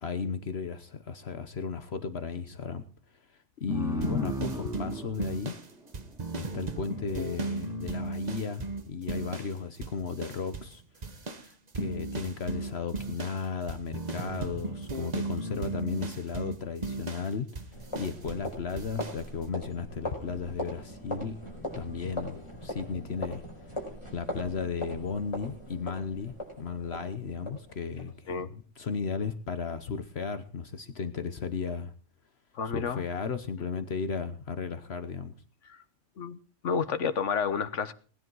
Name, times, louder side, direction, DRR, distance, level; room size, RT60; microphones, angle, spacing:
voice 1, 0.0-2.9 3.3-5.5 6.4-17.5 18.0-21.4 21.8-23.8 24.1-31.9 32.7-35.4, left 5 dB, 60° left, 1.2 m, -35 dB
sound 1, 3.7-6.8, equal, 5° right, 1.7 m, -36 dB
sound 2, 4.0-9.6 9.8-10.8 11.0-18.5 18.8-19.2, right 3 dB, 35° right, 1.2 m, -36 dB
sound 3, 17.7-28.3, left 1 dB, 25° left, 5.3 m, -40 dB
voice 2, 32.5-33.0 35.7-35.8 36.2-37.9, left 6 dB, 85° left, 1.4 m, -30 dB
19.5 x 10.5 x 4.7 m
omnidirectional pair, 1.2 m